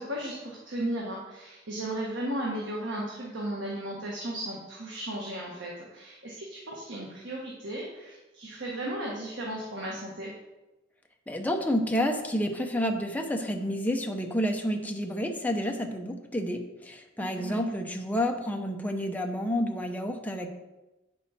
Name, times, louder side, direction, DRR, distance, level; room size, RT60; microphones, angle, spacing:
voice 1, 0.0-10.3 17.2-17.6, right 1 dB, 70° right, -3 dB, 1.4 m, -35 dB
voice 2, 11.3-20.5, equal, 10° left, 3 dB, 0.8 m, -29 dB
8.4 x 6.3 x 4.3 m, 1.0 s
head